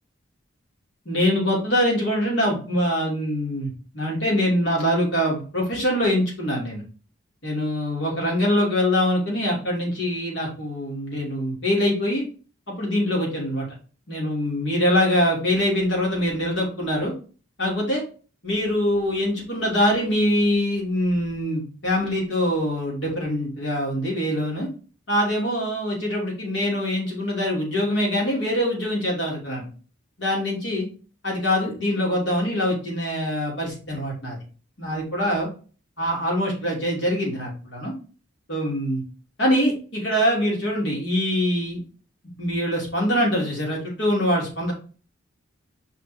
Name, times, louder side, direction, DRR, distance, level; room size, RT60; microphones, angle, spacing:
voice 1, 1.0-6.8 7.4-12.2 12.7-13.6 14.1-17.1 17.6-18.0 18.4-24.7 25.1-29.7 30.2-30.9 31.2-34.4 34.8-35.5 36.0-37.9 38.5-39.0 39.4-41.8 42.4-44.7, equal, 65° left, -3 dB, 2.9 m, -24 dB
5.8 x 3.9 x 4.4 m, 0.38 s
head